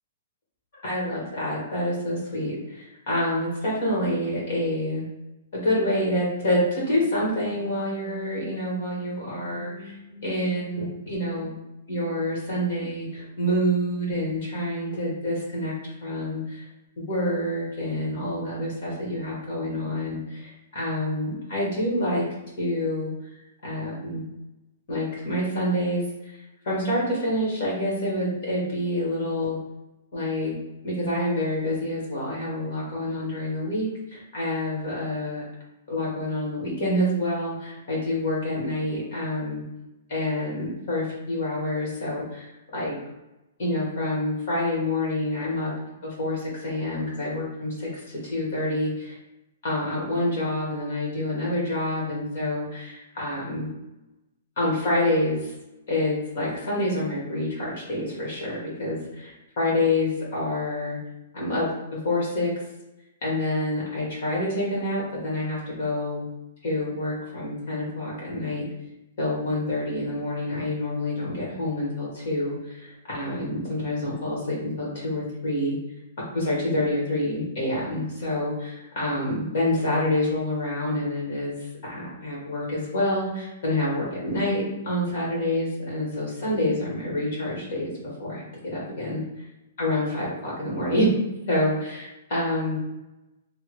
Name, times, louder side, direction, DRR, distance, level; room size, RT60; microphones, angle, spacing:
voice 1, 0.8-5.1 5.5-11.6 11.9-16.6 17.0-22.2 22.6-23.1 23.6-24.2 24.9-26.0 26.6-29.6 30.1-30.5 30.8-35.4 35.9-39.6 40.1-42.9 43.6-45.7 46.0-49.2 49.6-53.7 54.6-55.5 55.9-61.0 61.3-61.7 62.0-62.5 63.2-66.2 66.6-68.7 69.2-75.7 76.3-87.9 88.2-89.2 89.8-91.1 91.5-92.8, left 1 dB, 45° left, -4 dB, 1.4 m, -27 dB
3.5 x 2.1 x 3.0 m, 0.95 s
hypercardioid pair, 175°, 0 cm